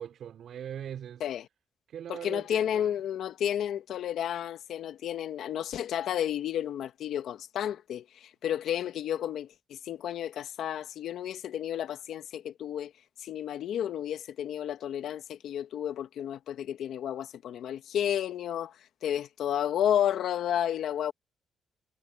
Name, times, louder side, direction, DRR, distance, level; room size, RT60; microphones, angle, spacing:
voice 1, 0.0-1.2 1.9-2.9, right 9 dB, 65° right, 5.1 m, -41 dB
voice 2, 2.1-12.9 13.2-18.7 19.0-21.1, left 10 dB, 75° left, 1.4 m, -32 dB
cardioid pair, 90°, 0 cm